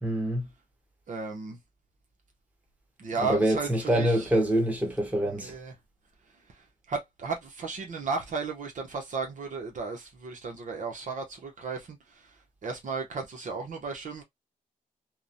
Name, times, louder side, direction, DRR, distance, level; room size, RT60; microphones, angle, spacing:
voice 1, 0.0-0.5 3.2-5.5, right 1 dB, 10° right, 1.1 m, -25 dB
voice 2, 1.1-1.6 3.0-4.3 5.2-5.7 6.9-12.3 12.6-14.2, right 4 dB, 60° right, 0.7 m, -34 dB
2.9 x 2.0 x 2.5 m
cardioid pair, 95°, 14 cm